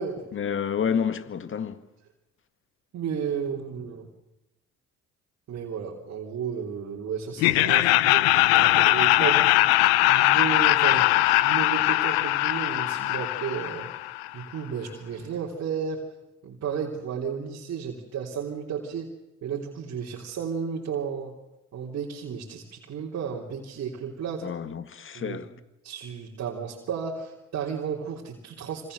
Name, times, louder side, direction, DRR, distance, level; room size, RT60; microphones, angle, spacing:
voice 1, 0.3-1.8 24.4-25.5, left 7 dB, 40° left, 1.9 m, -29 dB
voice 2, 2.9-4.1 5.5-9.8 10.1-11.0 11.4-13.9 14.3-16.0 16.4-19.1 19.4-21.3 21.7-24.5 25.1-25.4 25.8-28.9, right 7 dB, 55° right, 3.5 m, -33 dB
Laughter, 7.4-14.3, left 18 dB, 80° left, 0.8 m, -21 dB
27.0 x 25.5 x 6.7 m
hypercardioid pair, 60°, 31 cm